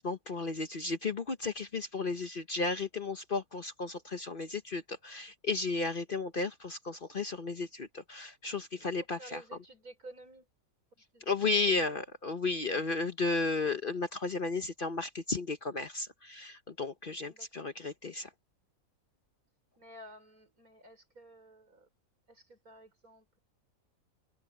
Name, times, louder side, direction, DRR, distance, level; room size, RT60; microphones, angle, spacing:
voice 1, 0.0-9.4 11.3-18.3, left 3 dB, 40° left, 1.0 m, -34 dB
voice 2, 9.2-10.5 11.1-12.0 17.2-17.7 19.8-21.9 22.3-23.4, right 1 dB, 70° right, 6.5 m, -53 dB
omnidirectional pair, 1.5 m